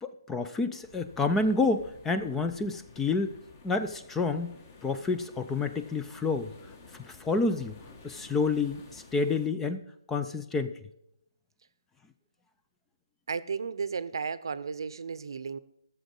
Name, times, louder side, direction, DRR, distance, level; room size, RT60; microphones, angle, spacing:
voice 1, 0.0-3.3 3.6-4.5 4.8-6.5 7.0-7.8 8.0-10.7, left 3 dB, 10° left, 9 dB, 0.4 m, -29 dB
sound 1, 0.8-9.5, left 4 dB, 30° left, 1.4 m, -53 dB
voice 2, 13.3-15.6, right 5 dB, 65° right, 16 dB, 0.6 m, -34 dB
14.0 x 7.1 x 5.4 m, 0.78 s
hypercardioid pair, 155°, 3 cm